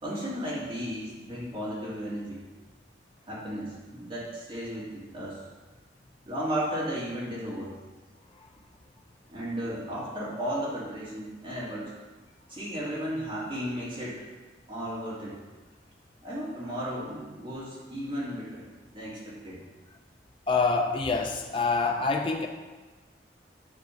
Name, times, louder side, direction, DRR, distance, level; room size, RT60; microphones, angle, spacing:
voice 1, 0.0-2.4 3.3-5.4 6.3-7.7 9.3-11.9 12.5-14.2 14.7-15.4 16.2-18.6 18.9-19.6, equal, 30° right, -8 dB, 2.4 m, -34 dB
voice 2, 20.5-22.5, left 4 dB, 30° left, 3 dB, 0.4 m, -26 dB
9.2 x 3.5 x 5.7 m, 1.3 s
head